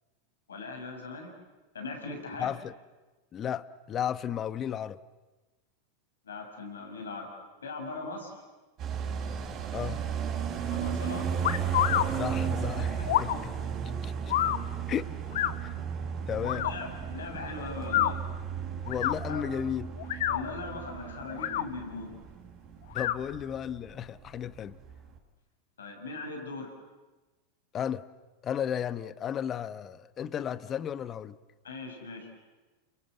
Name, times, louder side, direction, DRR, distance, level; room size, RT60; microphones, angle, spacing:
voice 1, 0.5-1.3 1.7-2.5 6.2-7.3 7.6-8.3 10.7-11.3 13.0-13.1 16.5-18.2 19.3-19.4 20.3-22.1 25.8-26.7 31.6-32.3, left 3 dB, 85° left, 3 dB, 6.4 m, -39 dB
voice 2, 2.4-2.7 3.3-5.0 9.7-10.0 12.1-13.3 13.8-14.3 14.9-15.1 15.6-15.7 16.1-16.7 18.9-19.9 22.9-24.8 27.7-28.0 28.4-31.4, left 9 dB, 35° left, 16 dB, 1.0 m, -34 dB
sound 1, 8.8-23.9 24.2-24.3 24.6-25.1, right 7 dB, 40° right, 5.6 m, -34 dB
sound 2, 11.4-12.1 13.0-13.4 14.3-14.6 15.3-15.5 16.4-16.7 17.8-18.1 18.9-19.2 20.0-20.4 21.3-21.6 22.9-23.2, left 13 dB, 70° left, 1.0 m, -27 dB
29.5 x 22.5 x 7.9 m, 1.2 s
hypercardioid pair, 95°, 0 cm